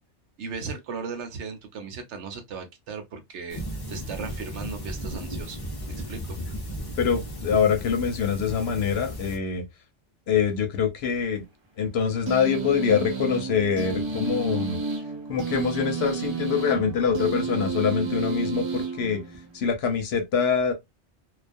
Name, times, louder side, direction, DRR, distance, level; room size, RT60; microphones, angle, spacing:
voice 1, 0.4-5.6 5.9-6.6, right 5 dB, 75° right, 1.0 m, -37 dB
sound 1, 3.5-9.4, equal, 30° left, 0.5 m, -35 dB
voice 2, 7.0-9.6 10.3-11.4 11.8-14.8 15.3-19.2 19.5-20.7, left 7 dB, 65° left, 0.9 m, -24 dB
sound 2, 12.3-19.7, right 5 dB, 35° right, 0.5 m, -31 dB
2.3 x 2.3 x 2.4 m
omnidirectional pair, 1.2 m